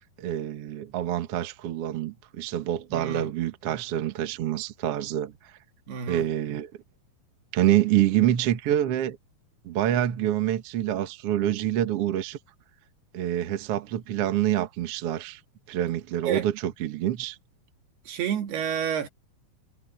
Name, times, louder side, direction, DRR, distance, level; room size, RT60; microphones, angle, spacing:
voice 1, 0.2-5.3 6.1-6.7 7.5-9.2 9.6-12.4 13.1-15.4 15.7-17.4, right 12 dB, 65° right, 1.6 m, -26 dB
voice 2, 2.9-3.3 5.9-6.3 16.2-16.5 18.1-19.1, right 8 dB, 80° right, 4.2 m, -29 dB
omnidirectional pair, 4.5 m